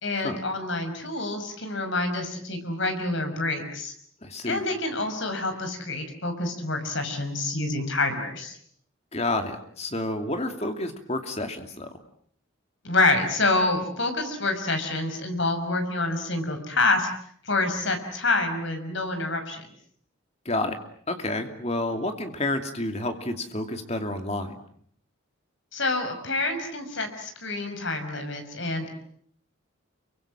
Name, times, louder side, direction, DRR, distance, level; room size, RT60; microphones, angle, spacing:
voice 1, 0.0-3.9 4.5-8.6 12.8-17.1 17.5-19.6 25.7-28.9, left 2 dB, 60° left, 7 dB, 5.7 m, -27 dB
voice 2, 4.2-4.6 9.1-12.0 20.4-20.8 21.1-24.6, left 2 dB, 30° left, 6 dB, 2.7 m, -30 dB
29.0 x 24.0 x 7.5 m, 0.63 s
head